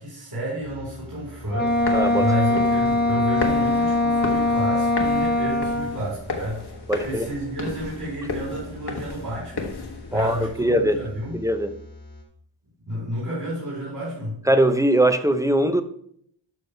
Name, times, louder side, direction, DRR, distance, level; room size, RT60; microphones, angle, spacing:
voice 1, 0.0-6.7 7.0-9.8 10.1-11.4 12.9-14.4, equal, 50° right, 4.3 m, -31 dB
sound 1, 0.6-12.2, left 2 dB, 90° left, 2.7 m, -44 dB
Wind instrument woodwind instrument, 1.5-6.0, left 2 dB, 25° left, 0.9 m, -22 dB
sound 2, 1.7-10.5, left 4 dB, 60° left, 1.5 m, -34 dB
voice 2, 1.9-2.3 6.9-7.3 10.1-11.0 11.3-11.7 14.5-15.8, right 1 dB, 5° right, 0.7 m, -21 dB
12.0 x 6.1 x 3.3 m
wide cardioid pair, 100°, 45 cm